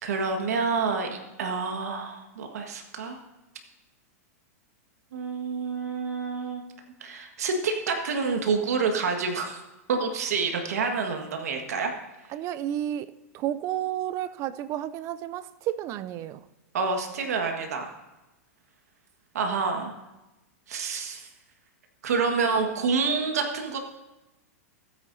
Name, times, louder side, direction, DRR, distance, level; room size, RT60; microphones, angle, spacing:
voice 1, 0.0-3.2 5.1-6.6 7.0-9.6 9.9-11.9 16.7-17.9 19.3-19.9 20.7-21.3 22.0-23.8, right 4 dB, 80° right, 4 dB, 1.6 m, -28 dB
voice 2, 12.3-16.4, right 11 dB, 35° right, 15 dB, 0.5 m, -31 dB
15.5 x 9.3 x 2.7 m, 1.0 s
hypercardioid pair, 125°, 8 cm